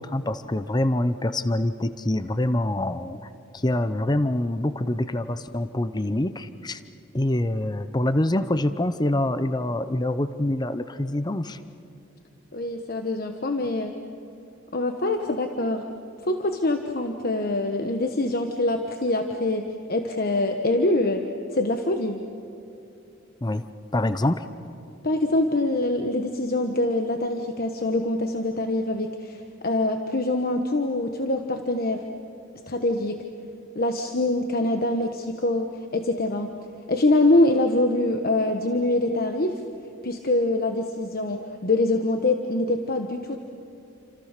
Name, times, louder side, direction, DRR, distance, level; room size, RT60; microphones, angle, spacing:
voice 1, 0.0-3.2 3.5-6.8 7.1-11.6 23.4-23.6 23.9-24.5, left 1 dB, 20° left, 11 dB, 0.7 m, -25 dB
voice 2, 12.5-13.9 14.7-15.8 16.2-22.2 25.0-32.1 32.7-33.2 33.7-36.5 36.9-39.6 40.0-43.4, left 2 dB, 45° left, 5 dB, 1.2 m, -24 dB
29.5 x 26.5 x 6.7 m, 2.7 s
head